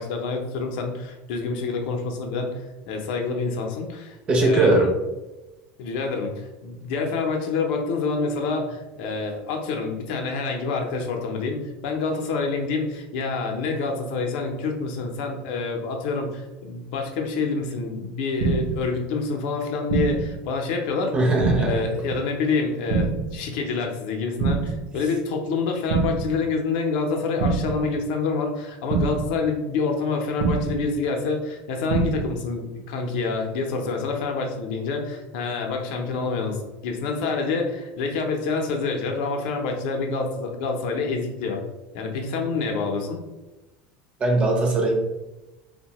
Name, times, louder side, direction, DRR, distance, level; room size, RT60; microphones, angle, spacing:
voice 1, 0.0-4.8 5.8-21.1 21.6-41.6 41.9-43.2, left 4 dB, 65° left, 2 dB, 0.5 m, -27 dB
voice 2, 4.3-4.9 21.1-21.8 44.2-45.0, right 2 dB, 25° right, 1 dB, 0.6 m, -20 dB
sound 1, 18.4-18.9 19.9-20.4 21.4-21.9 22.9-23.4 24.4-24.9 25.9-26.4 27.4-27.9 28.9-29.4 30.4-30.9 31.9-32.4, right 4 dB, 75° right, 0.4 m, -24 dB
2.7 x 2.1 x 2.9 m, 1.0 s
cardioid pair, 160°, 5 cm